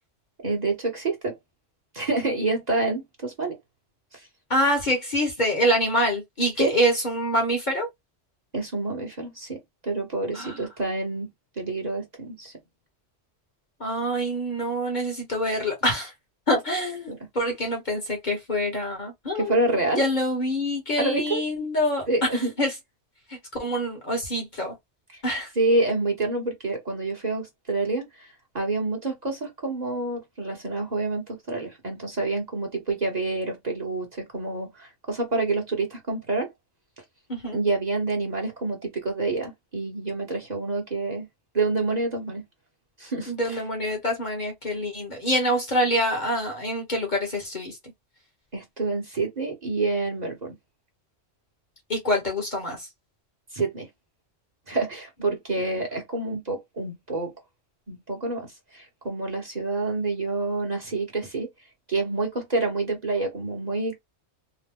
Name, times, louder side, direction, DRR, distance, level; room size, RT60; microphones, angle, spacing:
voice 1, 0.4-1.3 1.9-3.5 4.1-4.3 6.6-6.7 8.5-9.6 9.8-11.3 11.6-12.5 17.1-17.2 19.3-20.0 21.0-21.4 22.1-22.5 25.1-25.2 25.6-28.3 28.5-36.5 37.5-41.3 41.5-42.4 43.0-43.6 48.5-50.6 53.5-53.9 54.7-57.3 57.9-61.5 61.9-64.0, right 3 dB, 40° right, 1.0 m, -27 dB
voice 2, 4.5-7.9 10.3-10.6 13.8-16.1 16.5-19.6 20.0-22.1 22.3-22.7 23.3-24.7 25.2-25.5 37.3-37.6 43.3-47.8 51.9-52.9, equal, 40° left, 1.1 m, -26 dB
2.9 x 2.0 x 3.4 m
omnidirectional pair, 1.2 m